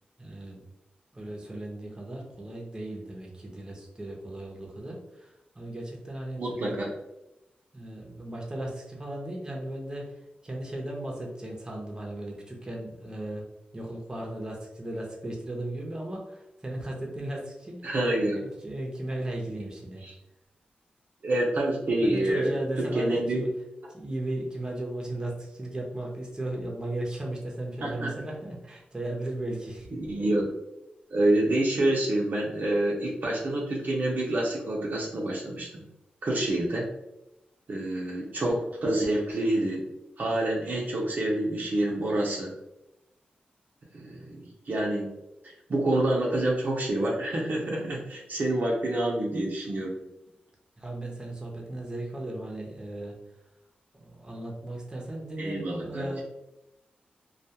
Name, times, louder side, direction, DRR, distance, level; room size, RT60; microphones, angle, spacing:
voice 1, 0.2-0.6 1.1-6.7 7.7-10.2 10.4-13.5 13.7-17.8 18.4-20.0 22.1-23.5 23.9-29.9 50.8-53.2 53.9-56.2, right 1 dB, 20° right, -2 dB, 0.7 m, -36 dB
voice 2, 6.4-6.9 17.8-18.4 20.0-20.1 21.2-23.5 27.8-28.1 29.9-30.5 31.1-35.8 36.2-36.9 37.7-39.9 40.2-42.5 43.9-45.1 45.4-50.0 55.4-56.2, right 1 dB, 60° right, -2 dB, 0.6 m, -27 dB
2.3 x 2.2 x 2.8 m, 0.91 s
cardioid pair, 70°, 3 cm